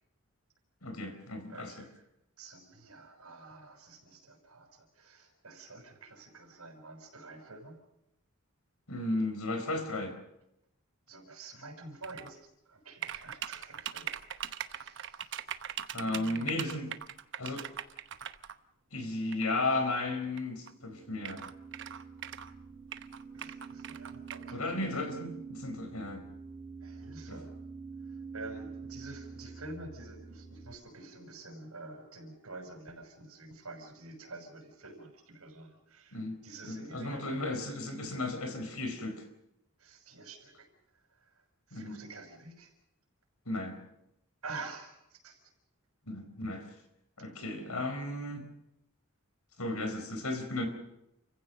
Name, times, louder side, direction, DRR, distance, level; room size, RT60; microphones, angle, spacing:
voice 1, 0.8-1.7 8.9-10.2 15.9-16.9 17.4-17.7 18.9-21.4 24.5-26.2 27.3-27.4 36.1-36.4 36.7-39.2 41.7-42.0 43.5-43.8 46.1-46.7 47.2-48.5 49.6-50.7, left 2 dB, 85° left, 7 dB, 4.4 m, -34 dB
voice 2, 1.5-2.0 2.4-7.8 11.1-15.4 15.9-16.6 23.3-24.8 26.8-27.5 28.1-37.5 39.8-40.7 41.1-42.7 44.4-45.4, right 3 dB, 85° right, 4 dB, 6.2 m, -48 dB
sound 1, 12.0-12.3 13.0-18.5 19.3-19.4 20.4-20.5 20.7-20.8 21.2-22.5 22.9-24.5, right 10 dB, 55° right, 0.9 m, -40 dB
sound 2, 20.6-30.8, right 5 dB, 20° left, 2.4 m, -46 dB
29.0 x 16.0 x 6.5 m, 0.84 s
head